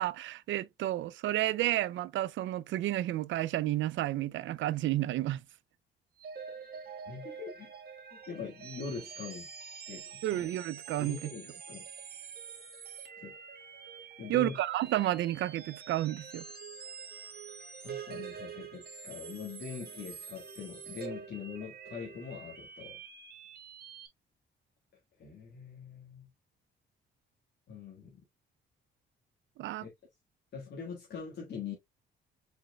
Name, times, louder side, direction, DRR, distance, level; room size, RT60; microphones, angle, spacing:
voice 1, 0.0-5.4 10.2-11.3 14.3-16.4 29.6-29.9, right 14 dB, 70° right, 0.4 m, -31 dB
sound 1, 6.2-24.1, right 6 dB, 50° right, 1.7 m, -46 dB
voice 2, 7.1-7.7 8.1-9.5 9.9-10.5 11.0-11.9 13.2-13.4 14.2-14.6 17.8-23.0 25.2-26.3 27.7-28.2 29.8-29.9 30.5-31.7, left 5 dB, 60° left, 1.6 m, -43 dB
5.0 x 4.5 x 2.2 m
cardioid pair, 90°, 20 cm